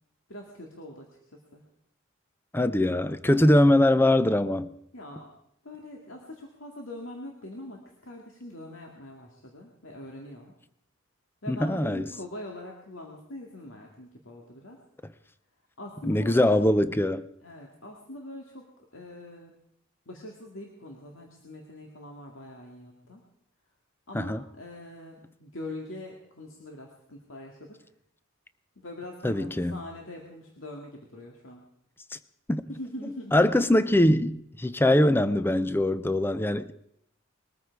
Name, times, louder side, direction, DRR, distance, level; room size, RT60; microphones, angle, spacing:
voice 1, 0.3-1.1 1.5-1.6 3.2-3.5 4.9-5.3 5.6-10.5 11.4-14.8 15.8-16.5 17.4-18.7 18.9-19.5 20.1-23.2 24.1-27.8 28.8-31.6 32.7-33.3, left 1 dB, 75° left, 2.2 m, -43 dB
voice 2, 2.5-4.7 11.5-12.1 16.0-17.3 24.1-24.4 29.2-29.8 32.5-32.6 33.3-36.7, left 1 dB, 10° left, 0.6 m, -22 dB
21.5 x 14.0 x 4.7 m
head